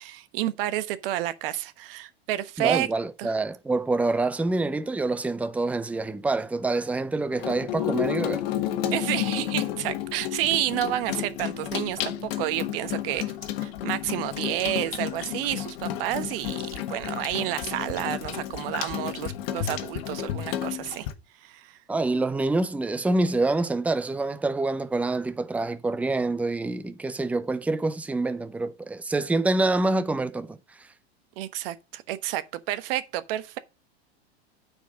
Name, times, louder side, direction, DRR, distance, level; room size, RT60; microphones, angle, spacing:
voice 1, 0.0-2.9 3.2-3.3 8.9-13.2 13.6-21.1 21.4-21.8 31.4-33.6, right 13 dB, 60° right, 1.1 m, -30 dB
voice 2, 2.6-8.5 21.9-30.6, right 2 dB, 5° right, 0.6 m, -26 dB
Water tap faucet / Sink (filling or washing), 7.3-21.1, left 12 dB, 65° left, 1.4 m, -31 dB
9.1 x 4.7 x 6.3 m
hypercardioid pair, 105°, 32 cm